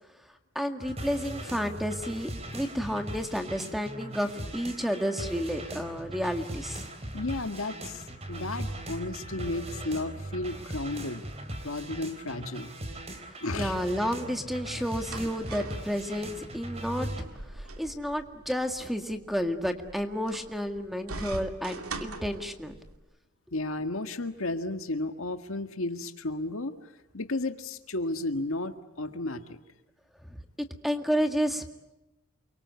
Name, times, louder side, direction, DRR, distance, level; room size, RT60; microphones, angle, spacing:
voice 1, 0.6-6.9 13.5-17.3 17.5-22.8 30.3-30.4 30.8-31.7, equal, ahead, 6 dB, 1.9 m, -31 dB
sound 1, 0.8-17.2, right 1 dB, 30° right, 3.7 m, -39 dB
voice 2, 7.1-11.2 11.6-12.7 13.4-13.7 15.5-15.6 23.5-26.8 27.1-29.6, left 2 dB, 70° left, 8 dB, 1.8 m, -33 dB
sound 2, 14.9-23.0, right 3 dB, 85° right, 2.6 m, -43 dB
29.0 x 24.0 x 8.3 m, 0.96 s
head